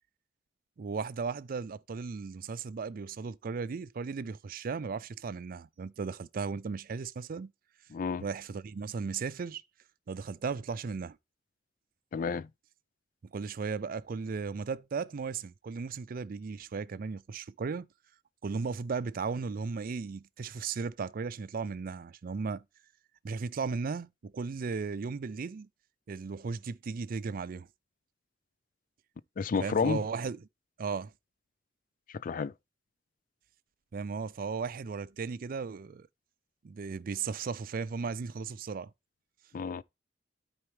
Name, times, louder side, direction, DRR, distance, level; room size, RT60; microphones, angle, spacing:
voice 1, 0.8-7.5 8.2-9.6 10.1-11.2 13.3-17.9 18.4-22.6 23.2-25.7 26.1-27.7 29.6-30.4 30.8-31.1 33.9-36.1 36.6-38.9, right 5 dB, 50° right, 0.4 m, -36 dB
voice 2, 7.9-8.2 12.1-12.5 29.4-30.0 32.2-32.5 39.5-39.8, left 5 dB, 45° left, 0.4 m, -30 dB
13.0 x 4.4 x 3.2 m
head